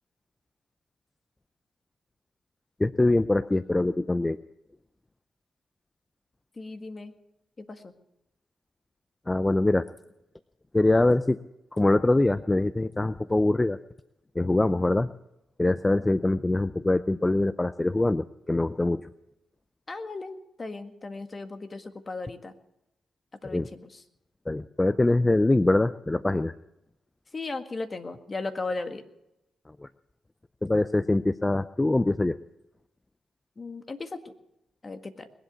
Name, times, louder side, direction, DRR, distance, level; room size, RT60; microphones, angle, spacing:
voice 1, 2.8-4.4 9.3-9.8 10.7-11.4 11.7-13.8 14.4-15.1 15.6-19.1 23.5-23.7 24.5-26.5 29.8-29.9 30.6-32.4, left 2 dB, 20° left, 14 dB, 0.6 m, -23 dB
voice 2, 6.6-7.1 7.6-7.9 19.9-20.3 20.6-22.5 23.4-24.0 27.3-29.0 33.6-34.3 34.8-35.3, left 3 dB, 35° left, 7 dB, 1.8 m, -36 dB
21.0 x 8.2 x 8.2 m, 0.87 s
supercardioid pair, 55°, 0 cm